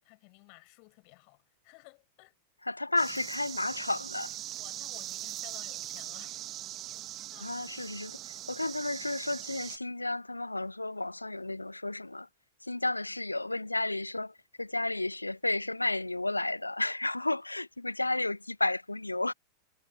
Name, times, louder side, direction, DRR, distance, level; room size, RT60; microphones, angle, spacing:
voice 1, 0.0-2.4 4.6-6.4 7.3-7.5, left 39 dB, 45° left, 4.8 m, -55 dB
voice 2, 2.6-4.4 7.4-12.3 12.6-19.3, left 2 dB, 85° left, 0.6 m, -32 dB
sound 1, 3.0-9.8, right 14 dB, 35° right, 0.8 m, -41 dB
figure-of-eight pair, 90°, 0 cm